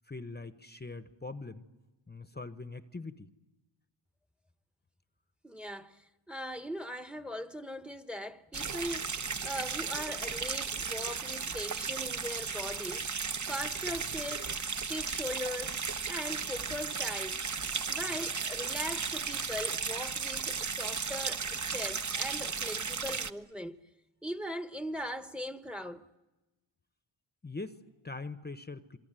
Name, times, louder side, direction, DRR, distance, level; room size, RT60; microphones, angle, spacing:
voice 1, 0.0-1.6 2.1-3.3 22.8-22.9 27.4-29.0, left 3 dB, 20° left, 1.1 m, -42 dB
voice 2, 5.4-6.0 6.3-13.2 13.5-15.8 16.1-17.4 17.9-23.8 24.2-26.0, equal, ahead, 1.2 m, -40 dB
sound 1, 8.5-23.3, right 5 dB, 35° right, 1.1 m, -35 dB
27.5 x 23.0 x 9.0 m
cardioid pair, 70°, 50 cm